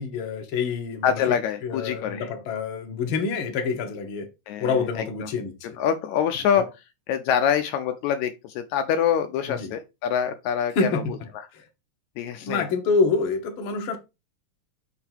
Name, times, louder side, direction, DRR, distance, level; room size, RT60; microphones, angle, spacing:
voice 1, 0.0-1.3 1.6-4.3 4.6-5.5 6.5-6.6 9.5-9.7 10.7-11.7 12.4-14.0, left 4 dB, 55° left, 1.6 m, -27 dB
voice 2, 1.0-2.3 4.5-4.7 5.0-5.1 5.8-6.7 7.1-11.0 12.2-12.7, left 8 dB, 80° left, 1.9 m, -25 dB
6.5 x 3.7 x 4.5 m
omnidirectional pair, 3.4 m